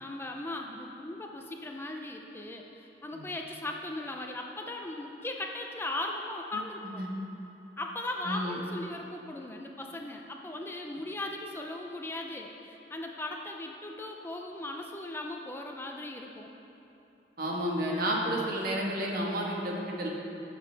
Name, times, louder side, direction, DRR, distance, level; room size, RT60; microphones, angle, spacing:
voice 1, 0.0-7.0 7.8-16.5, left 2 dB, 15° left, 1 dB, 0.5 m, -38 dB
voice 2, 6.5-7.1 8.2-8.6 17.4-20.1, equal, 55° right, -2 dB, 1.5 m, -31 dB
16.5 x 7.0 x 3.4 m, 2.9 s
head